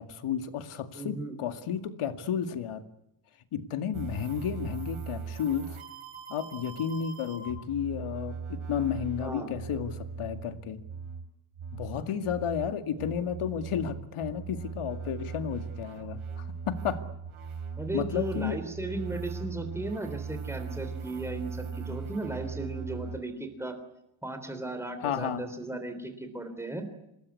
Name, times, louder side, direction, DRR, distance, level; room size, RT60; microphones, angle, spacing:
voice 1, 0.0-2.8 3.5-5.8 6.3-10.8 11.7-17.0 17.9-18.6 25.0-25.4, left 8 dB, 90° left, 9 dB, 2.3 m, -32 dB
voice 2, 1.0-1.4 9.2-9.5 17.8-23.8 24.2-26.9, right 2 dB, 5° right, 7 dB, 3.4 m, -36 dB
sound 1, 3.9-23.2, right 5 dB, 85° right, 3.6 m, -39 dB
26.5 x 20.0 x 9.6 m, 0.84 s
wide cardioid pair, 180°, 48 cm